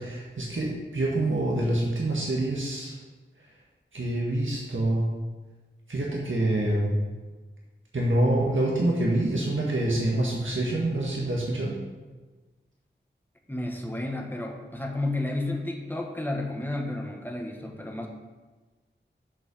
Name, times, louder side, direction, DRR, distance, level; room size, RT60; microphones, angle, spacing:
voice 1, 0.0-2.9 3.9-5.0 5.9-6.9 7.9-11.8, right 1 dB, 80° right, -4 dB, 1.6 m, -26 dB
voice 2, 13.5-18.1, left 2 dB, 10° left, 1 dB, 1.6 m, -32 dB
7.7 x 5.4 x 6.9 m, 1.3 s
wide cardioid pair, 40°, 20 cm